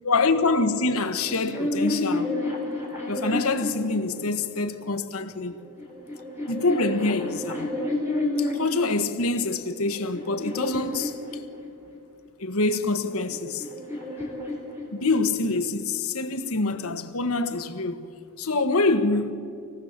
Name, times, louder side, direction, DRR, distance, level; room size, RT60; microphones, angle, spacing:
voice 1, 0.0-2.3 3.1-5.5 6.5-7.7 8.4-11.2 12.4-13.7 14.9-18.1 18.4-19.3, left 3 dB, 80° left, 1.4 m, -25 dB
sound 1, 1.2-4.6 5.5-8.9 9.5-12.0 13.0-15.4, left 2 dB, 10° right, 4.0 m, -31 dB
25.0 x 18.0 x 7.5 m
head